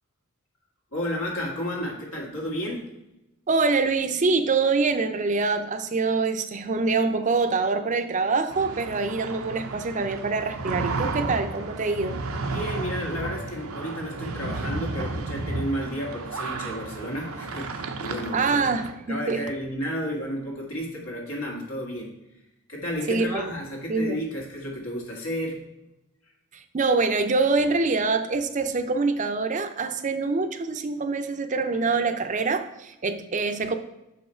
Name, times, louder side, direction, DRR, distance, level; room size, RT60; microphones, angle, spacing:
voice 1, 0.9-2.8 12.4-18.5 19.1-22.1 22.7-25.6, equal, 85° left, -1 dB, 1.9 m, -32 dB
voice 2, 3.5-12.2 18.3-19.4 23.1-23.5 23.9-24.2 26.5-33.8, right 4 dB, 35° right, 9 dB, 0.5 m, -25 dB
sound 1, 8.5-18.9, right 3 dB, 90° right, 0.7 m, -33 dB
6.6 x 5.5 x 4.4 m, 0.93 s
head